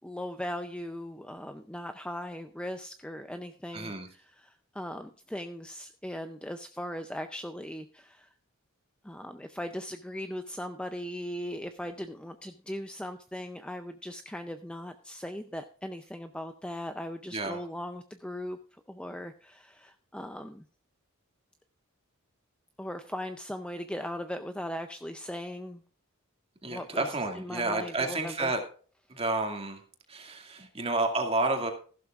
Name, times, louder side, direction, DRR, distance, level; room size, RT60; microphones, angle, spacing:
voice 1, 0.0-8.3 9.0-18.6 18.9-20.6 22.8-25.8 26.7-27.1 27.4-28.5, left 1 dB, 5° left, 8 dB, 0.5 m, -39 dB
voice 2, 3.7-4.1 17.3-17.6 26.6-28.6 29.1-29.8 30.1-31.7, right 2 dB, 25° right, 4 dB, 2.1 m, -30 dB
15.0 x 12.0 x 2.4 m, 0.41 s
head